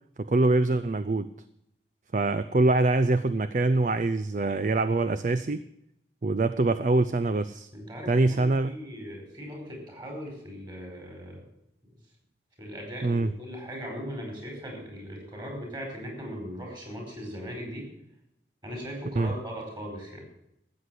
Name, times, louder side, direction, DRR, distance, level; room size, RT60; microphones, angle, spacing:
voice 1, 0.2-1.3 2.1-5.6 6.2-7.7 8.1-8.7 13.0-13.3 19.2-19.3, right 2 dB, 45° right, 13 dB, 0.5 m, -24 dB
voice 2, 7.7-11.5 12.6-17.9 18.6-20.3, equal, 25° right, 1 dB, 4.7 m, -39 dB
13.0 x 8.2 x 7.7 m, 0.81 s
head